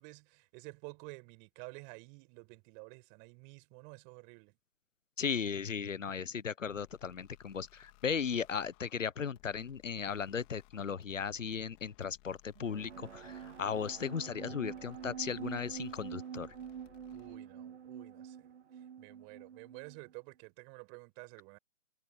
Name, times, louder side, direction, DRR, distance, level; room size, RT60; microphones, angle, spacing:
voice 1, 0.0-4.6 17.1-21.6, right 35 dB, 20° right, 5.4 m, -51 dB
voice 2, 5.2-16.5, left 6 dB, 85° left, 0.9 m, -36 dB
sound 1, 6.7-17.4, left 28 dB, 20° left, 3.4 m, -63 dB
sound 2, 12.5-20.1, right 8 dB, 60° right, 1.1 m, -46 dB
figure-of-eight pair, 150°, 37 cm